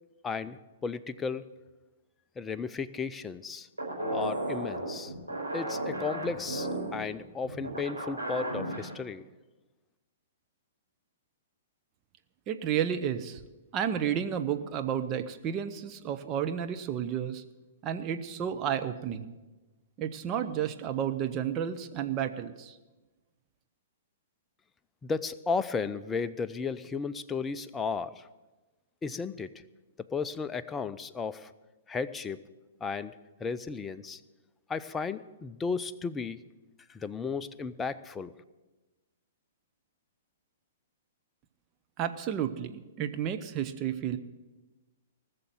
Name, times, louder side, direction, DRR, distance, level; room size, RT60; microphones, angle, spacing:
voice 1, 0.2-1.4 2.4-3.7 4.1-5.1 5.5-9.2 25.0-28.3 29.0-29.5 30.0-31.5 31.9-32.4 32.8-34.2 34.7-36.4 36.9-38.3, left 5 dB, 15° left, 12 dB, 0.5 m, -34 dB
sound 1, 3.8-8.9, right 1 dB, 85° right, 4.6 m, -34 dB
voice 2, 12.5-13.4 13.7-17.4 17.8-19.3 20.0-22.8 42.0-44.2, right 9 dB, 30° right, 8 dB, 0.8 m, -31 dB
19.5 x 6.7 x 7.6 m, 1.2 s
figure-of-eight pair, 110°, 0 cm